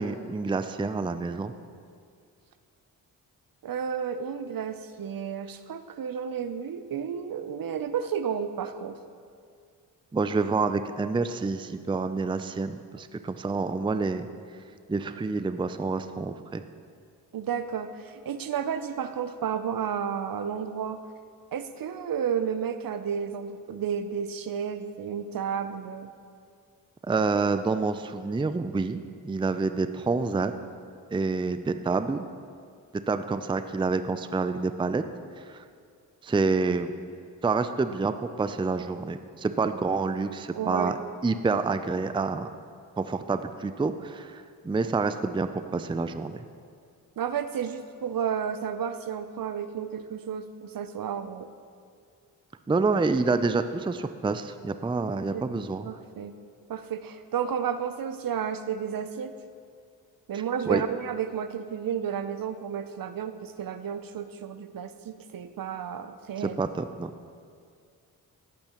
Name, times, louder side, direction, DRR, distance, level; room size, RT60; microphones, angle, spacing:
voice 1, 0.0-1.5 10.1-14.3 14.9-16.6 27.0-30.5 31.1-32.2 33.1-35.0 35.4-35.6 36.2-36.9 37.4-41.0 41.2-42.5 43.0-46.4 52.7-55.9 60.7-60.8 66.4-67.1, right 4 dB, 10° right, 10 dB, 0.5 m, -28 dB
voice 2, 3.6-9.0 17.3-21.0 21.5-26.1 40.6-40.9 47.2-51.5 55.3-56.4 56.7-59.3 60.3-66.6, right 7 dB, 50° right, 10 dB, 0.7 m, -32 dB
19.0 x 8.5 x 3.1 m, 2.2 s
hypercardioid pair, 45°, 43 cm